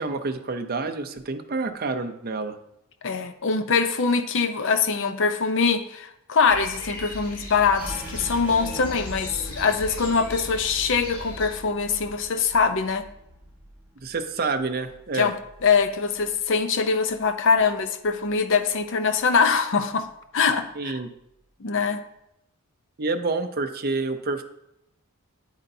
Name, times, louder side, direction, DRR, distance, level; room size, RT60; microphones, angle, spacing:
voice 1, 0.0-2.6 14.0-15.3 20.8-21.1 23.0-24.4, right 3 dB, 45° right, 7 dB, 0.6 m, -28 dB
voice 2, 3.0-13.1 15.1-15.4 15.6-20.1 20.3-21.0 21.6-22.0, left 5 dB, 55° left, 9 dB, 0.6 m, -23 dB
sound 1, 6.5-11.5, left 1 dB, 80° left, 2.0 m, -37 dB
sound 2, 7.8-17.2 17.5-18.7 19.0-19.5 20.0-20.6, equal, 10° right, 1.5 m, -43 dB
8.8 x 8.1 x 2.7 m, 0.83 s
head